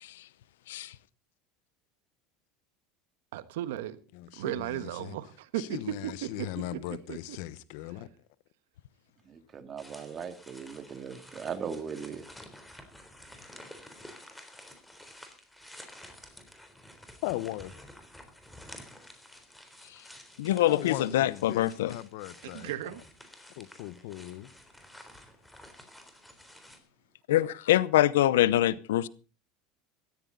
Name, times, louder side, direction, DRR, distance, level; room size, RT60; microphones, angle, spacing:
voice 1, 3.3-4.0 4.3-6.8 7.1-7.4 22.4-23.0, right 13 dB, 85° right, 1.4 m, -36 dB
voice 2, 4.1-5.2 5.6-8.1 17.2-17.7 20.6-22.7 23.6-24.5, left 16 dB, 70° left, 1.2 m, -38 dB
voice 3, 9.3-12.2, right 6 dB, 35° right, 2.3 m, -39 dB
sound 1, 9.8-26.8, left 1 dB, 5° left, 3.7 m, -51 dB
voice 4, 20.4-21.9 27.3-29.1, left 14 dB, 90° left, 0.7 m, -24 dB
17.0 x 13.5 x 4.0 m
supercardioid pair, 105°, 0 cm